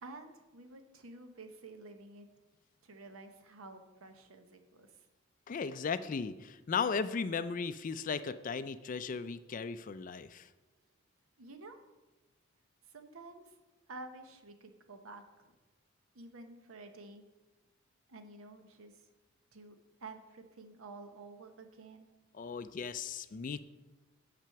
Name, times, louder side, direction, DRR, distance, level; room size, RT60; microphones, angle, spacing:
voice 1, 0.0-2.3 2.8-4.9 11.4-11.8 12.9-13.5 13.9-15.6 16.1-17.2 18.1-19.0 19.5-19.8 20.0-22.1, right 3 dB, 75° right, 7 dB, 0.9 m, -50 dB
voice 2, 5.5-10.5 22.3-23.6, left 5 dB, 40° left, 13 dB, 0.3 m, -36 dB
6.9 x 6.0 x 5.7 m, 1.1 s
head